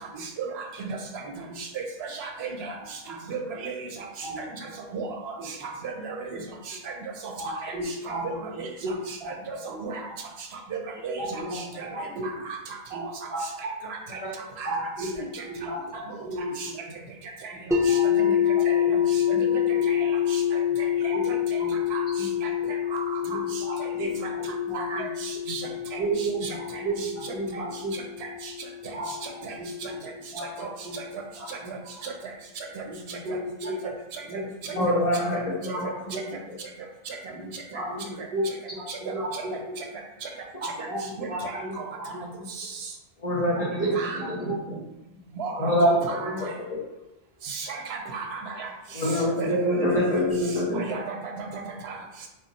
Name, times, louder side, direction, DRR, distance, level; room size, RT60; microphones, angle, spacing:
voice 1, 1.2-1.6 3.0-3.1 4.2-4.7 5.4-5.5 6.3-6.4 6.7-6.8 7.4-8.9 9.2-9.3 9.7-9.8 11.2-12.3 12.9-13.0 13.3-13.4 14.6-15.7 16.2-16.8 18.2-18.4 18.8-19.4 19.8-20.0 21.1-21.2 21.6-21.7 22.2-22.3 23.2-23.5 24.0-24.1 24.4-25.0 25.9-26.6 26.8-27.9 28.9-29.1 29.3-30.0 30.3-30.9 31.4-31.8 32.8-33.9 34.3-36.2 37.3-39.8 40.8-41.8 42.1-42.4 43.7-44.6 46.2-46.5, right 2 dB, 30° right, -11 dB, 1.4 m, -34 dB
voice 2, 2.2-2.7 3.3-3.9 4.9-5.3 5.8-6.3 6.9-7.0 7.2-7.3 7.6-7.7 8.2-8.7 9.5-10.0 11.0-11.3 11.8-11.9 12.9-13.0 14.6-14.7 16.6-16.7 17.9-18.0 18.7-18.8 19.3-19.6 19.9-20.0 20.3-20.4 21.3-21.4 21.9-22.1 22.4-22.5 22.9-23.2 24.2-24.3 24.7-25.1 25.5-25.6 29.5-29.6 29.8-29.9 30.6-30.7 31.5-31.6 32.0-32.1 32.8-32.9 33.1-33.2 35.8-35.9 39.3-39.4 41.2-41.6 44.0-44.2 45.4-46.3 47.5-48.7 49.4-50.2 50.7-51.0 51.4-51.5 51.8-51.9, right 5 dB, 80° right, 3 dB, 0.9 m, -33 dB
sound 1, 17.7-29.6, left 9 dB, 5° right, 0.3 m, -26 dB
voice 3, 34.8-35.9 43.2-43.8 44.3-44.8 45.6-45.9 48.9-50.8, left 1 dB, 45° left, -4 dB, 0.7 m, -25 dB
3.8 x 2.0 x 4.0 m, 0.96 s
omnidirectional pair, 1.0 m